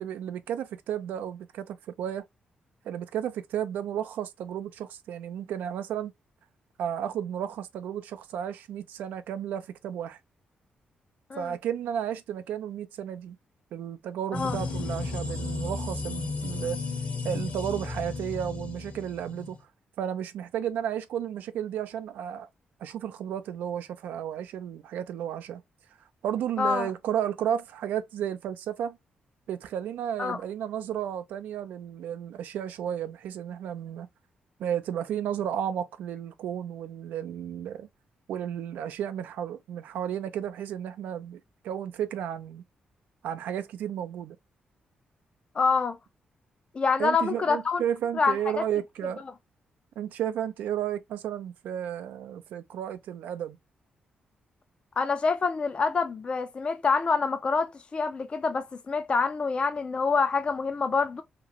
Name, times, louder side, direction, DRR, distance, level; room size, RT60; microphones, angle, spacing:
voice 1, 0.0-2.2 2.8-6.1 6.8-10.2 11.3-13.4 13.7-16.8 17.2-19.6 20.0-22.5 22.8-25.6 26.2-29.0 29.5-34.1 34.6-37.9 38.3-42.6 43.2-44.4 47.0-49.2 50.0-53.6, right 9 dB, 90° right, 0.4 m, -33 dB
sound 1, 14.3-19.6, left 3 dB, 55° left, 0.9 m, -34 dB
voice 2, 26.6-26.9 30.2-30.4 45.5-46.0 46.7-47.8 48.1-48.4 55.0-61.2, left 4 dB, 35° left, 0.4 m, -26 dB
2.9 x 2.5 x 2.8 m
cardioid pair, 90°, 3 cm